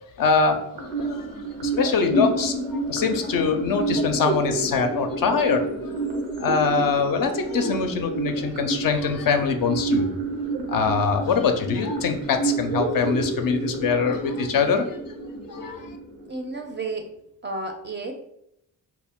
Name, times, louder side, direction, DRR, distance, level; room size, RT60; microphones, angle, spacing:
voice 1, 0.2-1.3 1.6-5.9 6.4-10.1 10.7-15.0 15.5-16.0, left 5 dB, 50° left, 6 dB, 0.5 m, -24 dB
sound 1, 0.8-16.8, right 2 dB, 85° right, 0.6 m, -29 dB
voice 2, 16.2-17.1 17.4-18.1, right 3 dB, 25° right, 4 dB, 0.4 m, -32 dB
2.1 x 2.0 x 3.5 m, 0.77 s
hypercardioid pair, 40°, 44 cm